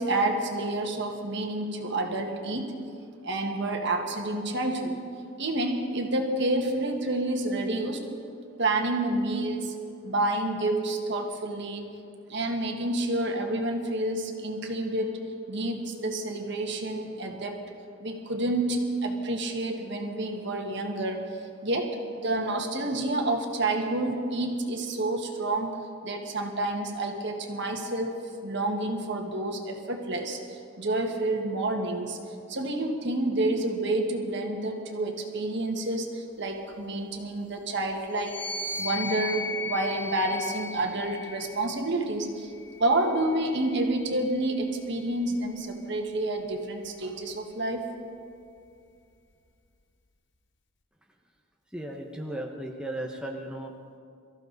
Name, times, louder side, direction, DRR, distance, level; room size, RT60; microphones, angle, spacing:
voice 1, 0.0-2.7 3.2-5.0 5.4-8.1 8.6-9.8 10.0-11.9 12.3-15.2 15.5-17.6 18.0-21.3 21.6-32.2 32.5-38.4 38.8-42.5 42.8-47.9, right 2 dB, 55° right, 3 dB, 1.7 m, -29 dB
sound 1, 38.1-41.7 42.5-44.1, left 3 dB, 60° left, 1.2 m, -37 dB
voice 2, 51.7-53.7, right 1 dB, 5° right, 1 dB, 0.9 m, -35 dB
23.5 x 14.5 x 4.1 m, 2.4 s
head